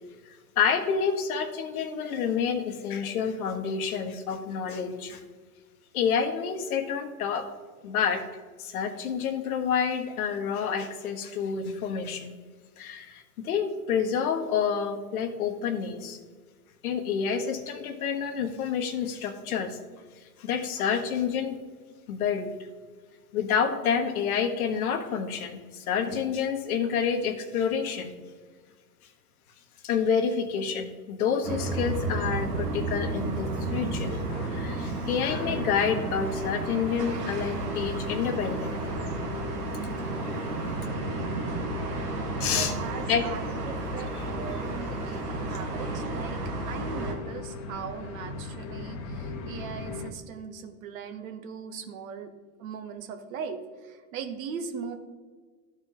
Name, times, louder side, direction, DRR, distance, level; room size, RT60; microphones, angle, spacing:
voice 1, 0.2-5.2 5.9-7.5 7.8-8.2 8.6-12.4 12.8-16.2 16.8-19.8 20.4-21.6 22.1-22.5 23.3-28.2 29.8-38.7 42.4-42.7 43.1-43.3 44.2-44.3, left 7 dB, 65° left, 7 dB, 1.2 m, -28 dB
sound 1, 31.4-47.1, right 2 dB, 85° right, 2.0 m, -32 dB
sound 2, 33.4-50.1, left 4 dB, 45° left, 1.1 m, -41 dB
voice 2, 42.5-52.3 52.6-55.0, right 6 dB, 60° right, 7 dB, 1.2 m, -39 dB
13.0 x 4.6 x 3.8 m, 1.5 s
hypercardioid pair, 120°, 47 cm